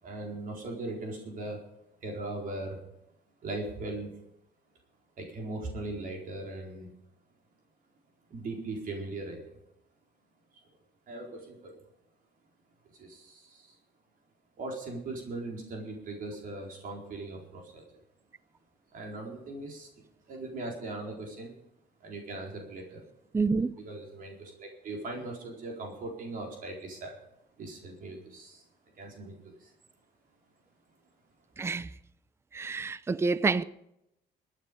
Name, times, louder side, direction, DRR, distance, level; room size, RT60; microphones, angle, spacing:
voice 1, 0.0-1.6 2.0-2.8 3.4-4.1 5.2-6.9 8.3-9.6 10.5-10.6 11.1-11.8 12.9-13.8 14.6-18.0 18.9-19.9 20.3-21.6 22.0-23.0 23.5-27.2 27.6-28.6 29.0-29.7, right 2 dB, 55° right, 4.3 m, -39 dB
voice 2, 23.3-23.7 31.6-31.9 32.5-33.6, right 4 dB, 15° right, 0.5 m, -28 dB
22.0 x 9.2 x 5.3 m
cardioid pair, 110°, 17 cm